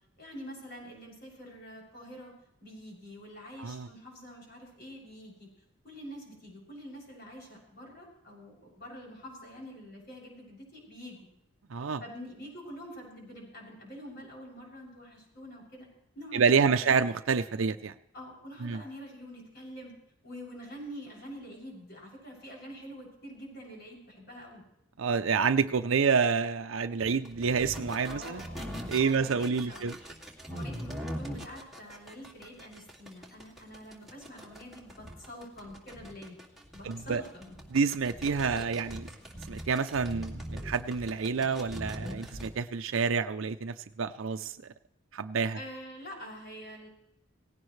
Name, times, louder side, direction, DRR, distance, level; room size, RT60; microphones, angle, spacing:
voice 1, 0.2-2.3 2.6-5.5 5.8-11.2 12.0-15.9 16.2-17.0 18.1-19.9 20.2-24.6 28.1-28.7 29.0-30.0 30.5-36.5 36.7-37.6 45.6-46.9, equal, 55° left, -2 dB, 7.0 m, -46 dB
voice 2, 11.7-12.0 16.3-17.9 18.6-18.8 25.0-28.4 28.9-30.0 36.8-37.2 37.7-39.1 39.5-44.6 45.1-45.6, right 5 dB, 75° right, 8 dB, 0.5 m, -28 dB
sound 1, 27.0-42.5, equal, ahead, 2.3 m, -42 dB
18.5 x 17.0 x 3.2 m, 0.80 s
head